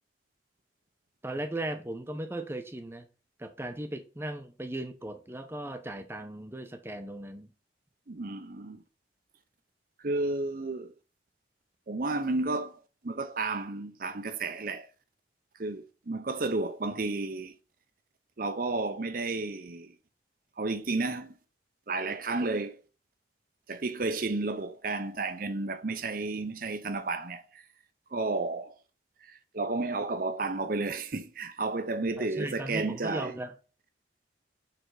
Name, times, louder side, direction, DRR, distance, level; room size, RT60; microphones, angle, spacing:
voice 1, 1.2-3.1 3.4-7.5 32.2-33.6, right 1 dB, 15° right, 0.7 m, -37 dB
voice 2, 8.1-8.8 10.0-10.9 11.9-14.9 15.6-17.5 18.4-19.9 20.6-21.4 21.9-22.8 23.7-27.6 28.1-28.7 29.2-33.4, right 3 dB, 50° right, 0.6 m, -32 dB
6.7 x 3.4 x 4.8 m
head